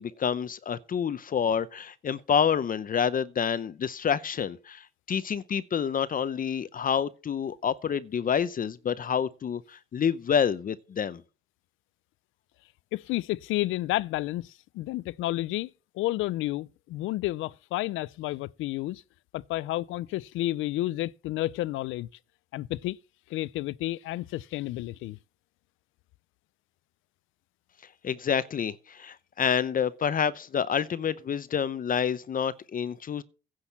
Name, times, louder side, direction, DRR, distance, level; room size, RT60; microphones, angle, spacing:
voice 1, 0.0-11.2 28.0-33.2, left 7 dB, 45° left, 0.7 m, -28 dB
voice 2, 12.9-15.7 15.9-19.0 19.3-22.1 22.5-23.0 23.3-25.2, left 16 dB, 85° left, 0.4 m, -31 dB
10.0 x 6.3 x 7.2 m
cardioid pair, 90°, 20 cm